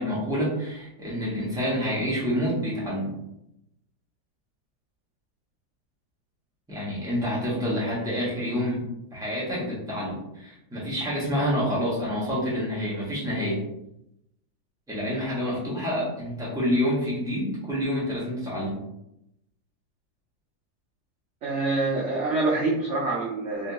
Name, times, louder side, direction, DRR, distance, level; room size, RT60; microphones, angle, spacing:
voice 1, 0.0-3.1 6.7-8.8 9.1-13.6 14.9-18.8, equal, 5° right, -8 dB, 1.0 m, -28 dB
voice 2, 21.4-23.7, right 3 dB, 60° right, -3 dB, 0.8 m, -26 dB
3.3 x 2.9 x 2.8 m, 0.83 s
omnidirectional pair, 1.8 m